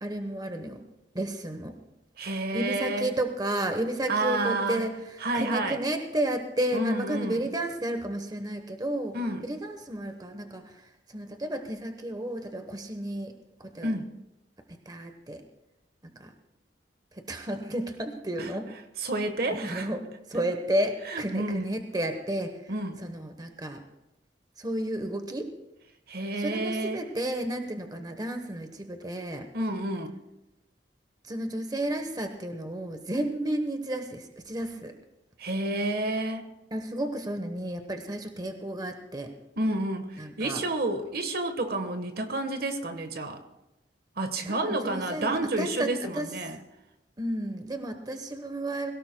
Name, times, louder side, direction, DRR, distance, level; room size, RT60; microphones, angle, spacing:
voice 1, 0.0-0.8 1.1-1.7 2.5-5.0 5.3-9.2 9.4-10.8 11.1-13.3 13.6-13.9 14.9-15.4 16.0-16.3 17.1-18.7 19.5-22.6 23.0-23.8 24.6-25.5 26.4-29.5 31.2-34.9 36.7-39.3 40.2-40.6 44.5-46.3 47.2-48.9, right 1 dB, 20° right, 6 dB, 1.0 m, -32 dB
voice 2, 2.2-3.1 4.1-4.8 5.2-5.8 6.7-7.5 9.1-9.5 13.8-14.1 18.4-18.5 19.0-19.9 21.1-21.7 22.7-23.0 26.1-27.0 29.5-30.1 35.4-36.5 39.6-43.4 44.2-46.6, right 2 dB, 60° right, 8 dB, 1.2 m, -30 dB
21.5 x 17.5 x 2.2 m, 0.94 s
head